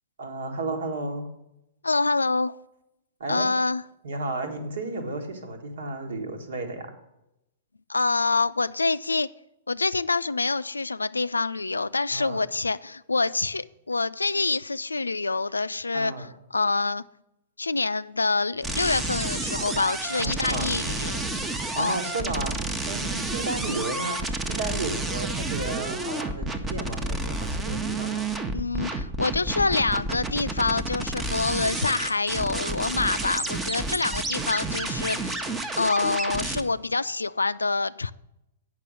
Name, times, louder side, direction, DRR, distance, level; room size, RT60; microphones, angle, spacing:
voice 1, 0.2-1.3 3.2-3.5 4.0-6.9 12.1-12.4 15.9-16.3 20.2-20.7 21.7-22.6 22.9-24.2 24.5-28.3, right 2 dB, 65° right, 1.7 m, -33 dB
voice 2, 1.8-2.6 3.3-3.8 6.1-6.2 7.9-9.3 9.7-17.0 17.6-21.2 21.8-22.0 28.5-35.5 35.8-38.1, left 3 dB, 85° left, 0.3 m, -26 dB
sound 1, 18.6-36.6, right 2 dB, 15° right, 0.9 m, -30 dB
9.0 x 6.0 x 6.2 m
figure-of-eight pair, 110°, 0 cm